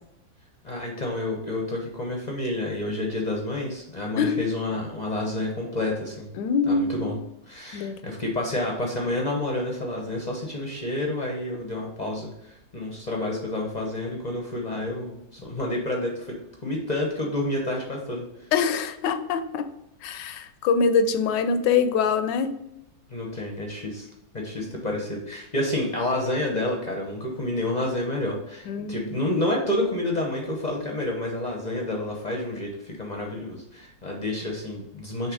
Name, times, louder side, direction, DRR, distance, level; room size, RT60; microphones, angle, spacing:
voice 1, 0.6-6.3 6.7-7.2 7.5-18.5 23.1-24.1 24.3-35.3, left 1 dB, 35° left, 0 dB, 0.7 m, -29 dB
voice 2, 6.4-7.1 7.7-8.0 18.5-19.7 20.0-22.6 28.7-29.2, left 5 dB, 75° left, 10 dB, 1.2 m, -24 dB
6.5 x 3.1 x 4.8 m, 0.85 s
omnidirectional pair, 2.0 m